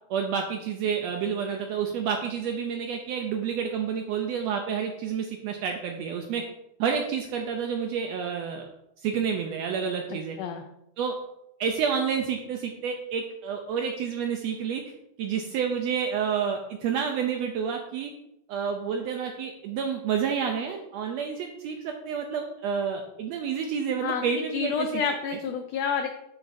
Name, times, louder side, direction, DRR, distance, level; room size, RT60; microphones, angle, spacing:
voice 1, 0.1-6.4 6.8-8.7 9.0-10.4 11.0-11.1 11.6-14.8 15.2-18.1 18.5-25.0, right 7 dB, 80° right, 4 dB, 1.5 m, -29 dB
voice 2, 24.0-26.1, left 6 dB, 85° left, 5 dB, 1.4 m, -29 dB
8.4 x 6.4 x 2.6 m, 0.84 s
omnidirectional pair, 3.6 m